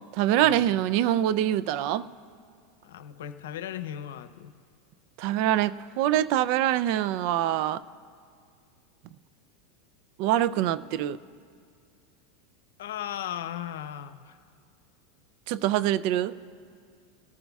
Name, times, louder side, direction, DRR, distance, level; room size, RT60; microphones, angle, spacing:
voice 1, 0.1-2.1 5.2-7.8 10.2-11.2 15.5-16.4, right 12 dB, 60° right, 16 dB, 0.5 m, -24 dB
voice 2, 2.8-4.5 12.8-14.4, left 10 dB, 80° left, 10 dB, 0.7 m, -37 dB
23.5 x 14.0 x 2.4 m, 2.2 s
hypercardioid pair, 115°, 0 cm